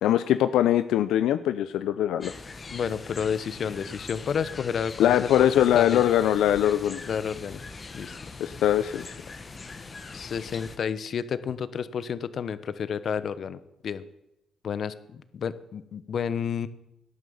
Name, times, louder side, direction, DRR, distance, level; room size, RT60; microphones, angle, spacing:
voice 1, 0.0-2.3 5.0-7.0 8.4-9.2, left 11 dB, 85° left, 12 dB, 0.6 m, -22 dB
sound 1, 2.2-10.8, left 4 dB, 35° left, 1.5 m, -42 dB
voice 2, 2.7-6.0 7.1-7.6 7.9-8.2 10.1-14.0 14.6-16.7, left 7 dB, 55° left, 14 dB, 1.1 m, -31 dB
18.0 x 10.5 x 7.2 m, 0.88 s
cardioid pair, 90°, 0 cm